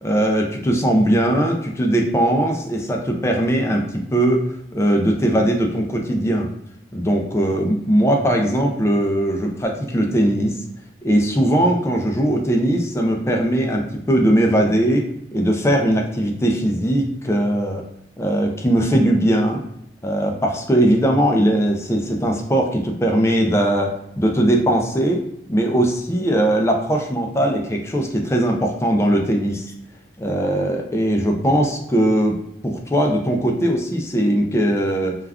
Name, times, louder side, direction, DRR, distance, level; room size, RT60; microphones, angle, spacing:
voice 1, 0.0-4.5 4.7-6.5 6.9-10.6 11.0-17.8 18.2-19.6 20.0-25.2 25.5-29.6 30.2-32.4 32.6-35.1, right 1 dB, 15° left, 1 dB, 0.4 m, -19 dB
2.3 x 2.3 x 3.4 m, 0.79 s
head